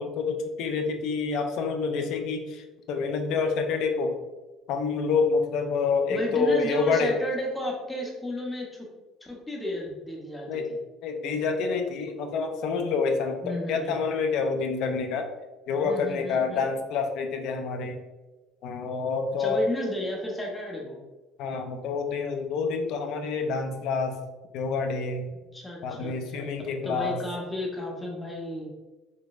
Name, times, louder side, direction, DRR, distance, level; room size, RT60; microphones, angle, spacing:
voice 1, 0.0-4.2 4.7-7.2 10.5-10.7 11.0-15.3 15.7-18.0 18.6-19.6 21.4-24.2 24.5-25.3 25.8-27.2, left 4 dB, 65° left, 5 dB, 0.5 m, -27 dB
voice 2, 6.1-8.9 9.2-10.8 13.4-14.0 15.8-16.6 19.4-21.0 25.5-26.5 26.8-28.7, left 1 dB, 10° left, -1 dB, 0.8 m, -33 dB
3.9 x 3.2 x 2.4 m, 1.2 s
cardioid pair, 145°, 0 cm